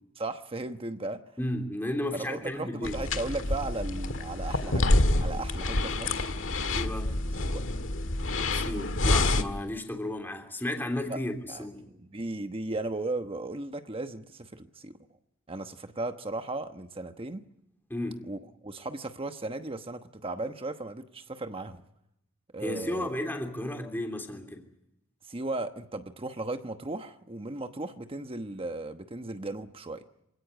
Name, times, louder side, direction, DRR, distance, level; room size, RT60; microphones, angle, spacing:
voice 1, 0.2-1.2 2.1-4.9 5.2-6.3 7.5-7.6 11.1-11.2 11.5-14.9 15.5-17.4 18.3-21.8 22.5-23.1 25.2-30.0, right 2 dB, 30° right, 1.1 m, -36 dB
voice 2, 1.4-3.0 6.7-7.1 8.5-11.8 17.9-18.2 22.6-24.6, left 1 dB, 10° left, 3.1 m, -33 dB
sound 1, 2.8-9.4, left 2 dB, 70° left, 1.7 m, -27 dB
26.5 x 17.5 x 9.4 m
head